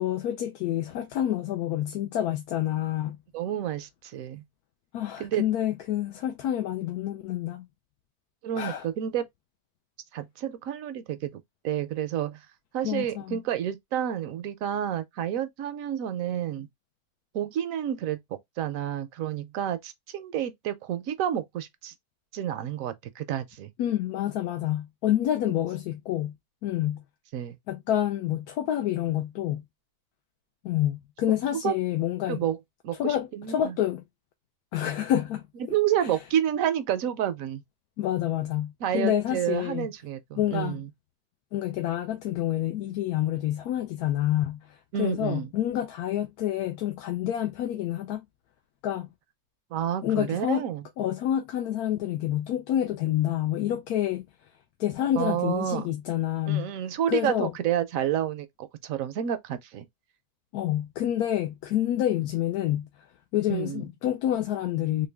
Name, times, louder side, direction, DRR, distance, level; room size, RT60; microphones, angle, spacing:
voice 1, 0.0-3.2 4.9-7.7 8.6-8.9 12.8-13.4 23.8-26.3 26.6-27.0 27.7-29.6 30.6-32.4 33.0-34.0 34.7-35.4 36.0-36.2 38.0-39.9 40.4-40.8 41.5-48.2 48.8-49.1 50.0-50.7 51.0-54.2 54.8-56.7 57.1-57.5 60.5-62.9 63.3-65.1, left 12 dB, 80° left, 1.1 m, -28 dB
voice 2, 3.3-4.4 5.2-5.4 8.4-9.2 10.1-12.4 12.7-16.7 17.3-18.2 18.6-21.9 22.3-23.7 27.3-27.6 31.3-31.4 31.6-31.7 32.3-32.6 32.8-33.7 35.7-37.6 38.8-40.9 44.9-45.5 49.7-50.8 55.2-55.9 56.5-59.9 63.5-63.8, right 10 dB, 70° right, 0.9 m, -29 dB
3.7 x 2.2 x 3.3 m
omnidirectional pair, 1.6 m